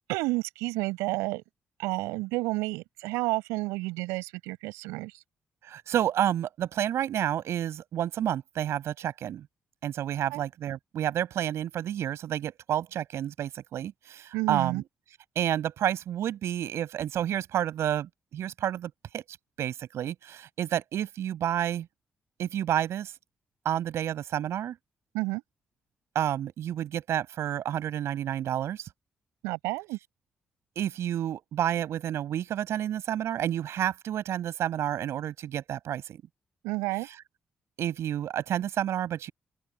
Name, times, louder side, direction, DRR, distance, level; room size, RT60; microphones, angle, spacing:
voice 1, 0.1-1.4 1.8-5.1 10.3-10.4 14.3-14.8 25.1-25.4 29.4-30.0 36.6-37.1, right 22 dB, 90° right, 7.7 m, -30 dB
voice 2, 5.7-9.4 9.8-14.8 15.4-19.2 19.6-21.9 22.4-23.1 23.6-24.7 26.1-28.9 30.8-36.2 37.8-39.3, right 11 dB, 75° right, 7.7 m, -30 dB
open air
hypercardioid pair, 45°, 5 cm